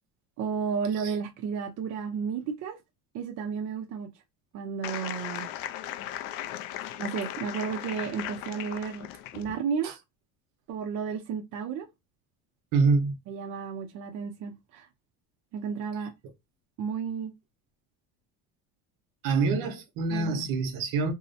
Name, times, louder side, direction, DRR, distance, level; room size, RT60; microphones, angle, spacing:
voice 1, 0.4-2.8 3.1-4.1 4.5-5.5 7.0-9.1 9.3-9.9 10.7-11.9 13.3-14.9 15.5-16.1 16.8-17.3 20.1-20.4, right 6 dB, 50° right, 0.5 m, -32 dB
sound 1, 4.8-9.5, left 12 dB, 65° left, 0.5 m, -37 dB
voice 2, 12.7-13.1 19.2-21.1, right 4 dB, 70° right, 0.9 m, -26 dB
2.7 x 2.0 x 2.5 m
cardioid pair, 120°, 36 cm